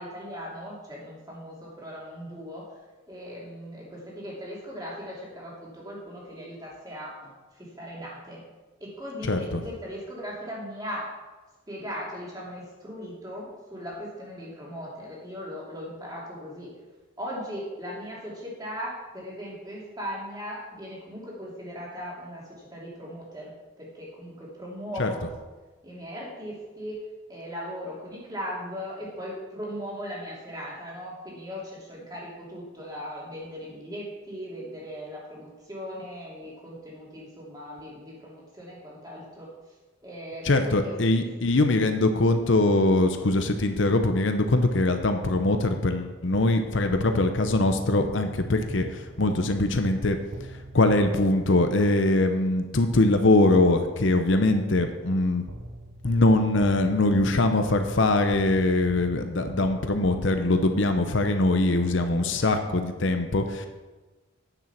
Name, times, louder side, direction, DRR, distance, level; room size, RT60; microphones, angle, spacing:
voice 1, 0.0-2.7 3.1-8.4 8.8-11.1 11.7-16.7 17.2-23.5 23.8-25.3 25.8-27.0 27.3-39.5 40.0-41.0 62.2-62.5, equal, 20° right, -5 dB, 2.7 m, -38 dB
voice 2, 9.2-9.6 25.0-25.1 40.4-50.2 50.7-55.4 56.0-63.7, left 2 dB, 65° left, 7 dB, 0.8 m, -22 dB
sound 1, 46.3-51.4 55.5-60.7, right 1 dB, 85° right, 1.1 m, -42 dB
9.4 x 7.2 x 5.8 m, 1.2 s
head